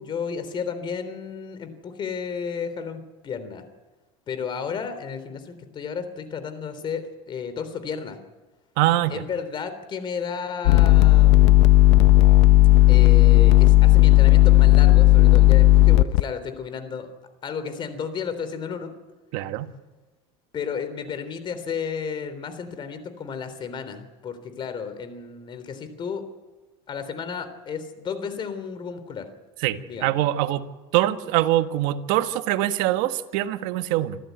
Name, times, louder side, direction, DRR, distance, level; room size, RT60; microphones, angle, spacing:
voice 1, 0.0-3.6 4.3-8.2 9.1-11.7 12.9-17.1 17.4-18.9 20.5-26.2 26.9-29.3 29.9-30.2, left 6 dB, 35° left, 11 dB, 3.5 m, -33 dB
voice 2, 8.8-9.2 19.3-19.7 29.6-30.6 30.9-34.2, right 14 dB, 70° right, 9 dB, 1.6 m, -23 dB
sound 1, 10.7-16.2, left 18 dB, 85° left, 0.7 m, -14 dB
26.5 x 14.0 x 9.5 m, 1.2 s
supercardioid pair, 120°, 14 cm